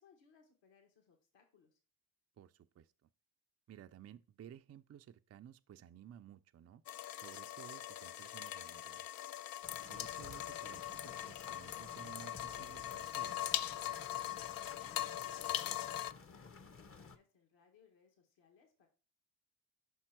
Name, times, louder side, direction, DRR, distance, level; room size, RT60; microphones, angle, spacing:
voice 1, 0.0-1.8 14.8-18.9, left 5 dB, 65° left, 1.8 m, -67 dB
voice 2, 2.4-3.1 3.7-6.8 7.1-9.1 9.8-13.5, right 9 dB, 35° right, 0.5 m, -56 dB
sound 1, 6.9-16.1, left 13 dB, 50° left, 0.5 m, -41 dB
sound 2, 9.6-17.2, left 4 dB, 30° left, 0.8 m, -55 dB
5.8 x 4.4 x 4.6 m
supercardioid pair, 60°, 48 cm